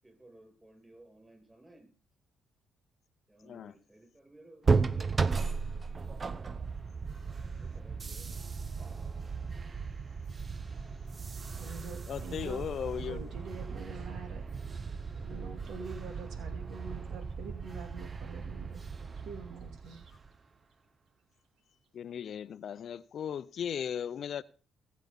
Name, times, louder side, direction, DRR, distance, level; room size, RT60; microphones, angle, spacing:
voice 1, 0.0-1.9 3.3-5.3 7.5-8.4, right 1 dB, 15° right, 7.9 m, -57 dB
sound 1, 4.6-20.4, right 4 dB, 35° right, 0.7 m, -35 dB
voice 2, 11.6-14.5 15.1-18.9 19.2-20.1, right 5 dB, 80° right, 2.5 m, -45 dB
voice 3, 12.1-13.3 21.9-24.4, left 8 dB, 60° left, 0.6 m, -37 dB
20.5 x 8.3 x 4.2 m
cardioid pair, 90°, 0 cm